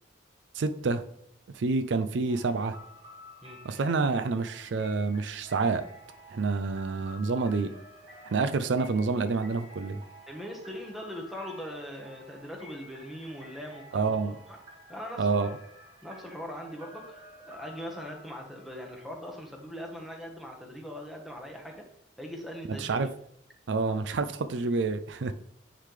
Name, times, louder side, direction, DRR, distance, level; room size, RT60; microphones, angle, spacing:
voice 1, 0.5-1.1 1.5-2.8 3.6-5.9 6.3-7.7 8.2-10.0 13.9-14.4 15.2-15.5 22.8-23.1 23.7-25.3, right 4 dB, 70° right, 11 dB, 0.4 m, -28 dB
sound 1, 2.3-19.9, left 1 dB, 25° right, 2.9 m, -51 dB
voice 2, 10.3-14.6 14.9-15.6 16.0-21.9 22.2-23.1 23.9-24.0, equal, ahead, 0 dB, 1.2 m, -41 dB
9.7 x 3.9 x 3.3 m, 0.74 s
head